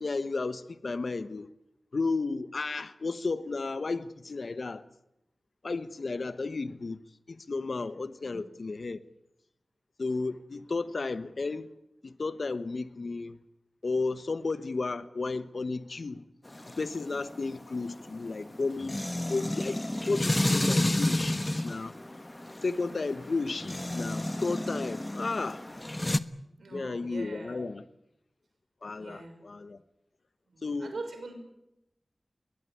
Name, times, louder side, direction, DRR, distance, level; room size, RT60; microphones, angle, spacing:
voice 1, 0.0-1.5 1.9-4.8 5.6-7.0 7.3-9.0 10.0-11.7 12.0-13.4 13.8-16.2 16.8-19.0 19.3-21.9 22.6-25.6 26.7-27.8 28.8-29.8 30.6-30.9, left 3 dB, 70° left, 1.1 m, -33 dB
sound 1, 16.5-26.2, left 1 dB, 25° left, 1.2 m, -31 dB
voice 2, 26.6-27.6 29.0-29.5 30.5-31.3, right 3 dB, 90° right, 6.0 m, -43 dB
21.5 x 20.0 x 9.9 m
cardioid pair, 45°, 0 cm